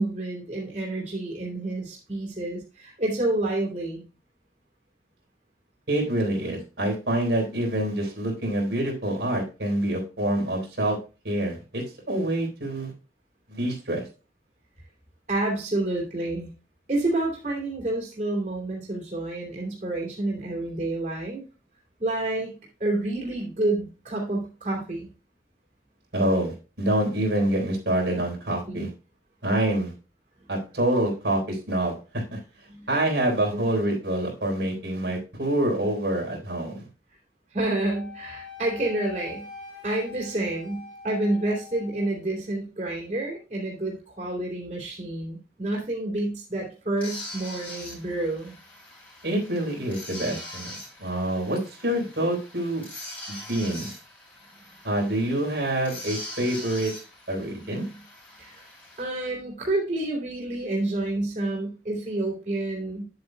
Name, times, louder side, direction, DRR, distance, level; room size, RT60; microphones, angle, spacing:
voice 1, 0.0-4.0 15.3-16.5 16.9-21.4 22.0-25.1 28.7-28.9 32.7-32.9 33.5-33.7 37.5-39.5 39.8-48.5 57.3-58.0 58.4-58.6 59.0-63.0, right 2 dB, 40° right, -2 dB, 2.9 m, -29 dB
voice 2, 5.9-11.0 11.2-12.9 13.5-14.1 26.1-28.9 29.4-29.9 30.5-32.4 32.9-36.9 49.2-52.8 53.3-53.9 54.8-56.9 57.3-57.8, right 1 dB, 80° right, -1 dB, 3.7 m, -26 dB
Wind instrument woodwind instrument, 37.9-42.1, left 5 dB, 30° left, 2.9 m, -44 dB
sound 1, 47.0-59.0, left 1 dB, 10° left, 3.5 m, -42 dB
9.9 x 8.0 x 2.2 m, 0.32 s
head